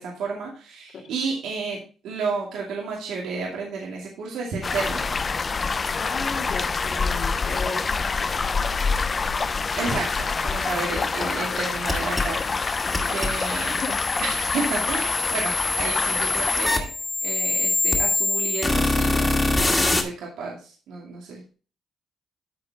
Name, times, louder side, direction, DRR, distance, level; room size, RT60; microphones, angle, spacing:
voice 1, 0.0-5.2 9.8-13.8 14.2-16.9 17.2-19.4 19.8-21.5, right 4 dB, 80° right, -3 dB, 2.5 m, -32 dB
sound 1, 4.6-16.7, left 4 dB, 35° left, 0.5 m, -26 dB
voice 2, 6.0-8.8 9.6-10.0 10.9-11.6 12.8-13.2 13.7-14.0, left 4 dB, 60° left, 1 dB, 2.7 m, -36 dB
sound 2, 11.8-20.0, left 2 dB, 15° left, 2.2 m, -25 dB
13.5 x 4.6 x 3.6 m, 0.36 s
cardioid pair, 90°, 0 cm